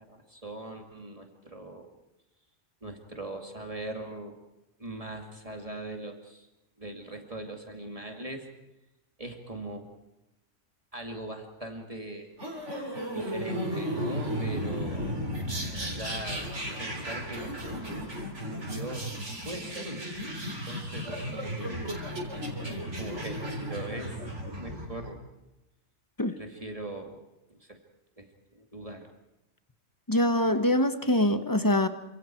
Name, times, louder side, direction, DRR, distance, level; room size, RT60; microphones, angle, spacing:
voice 1, 0.0-1.9 2.8-4.4 4.8-6.5 6.8-8.5 9.2-9.9 10.9-12.4 13.1-15.2 15.9-18.1 18.4-19.2 19.4-20.1 20.7-22.0 23.0-24.2 24.6-25.2 26.4-27.2 27.5-27.8 28.2-29.1, right 1 dB, 30° right, 3 dB, 2.5 m, -41 dB
sound 1, 12.4-25.1, equal, 70° right, 4.4 m, -34 dB
voice 2, 30.1-31.9, left 1 dB, 15° left, 9 dB, 1.2 m, -24 dB
28.0 x 26.0 x 4.6 m, 0.95 s
omnidirectional pair, 1.3 m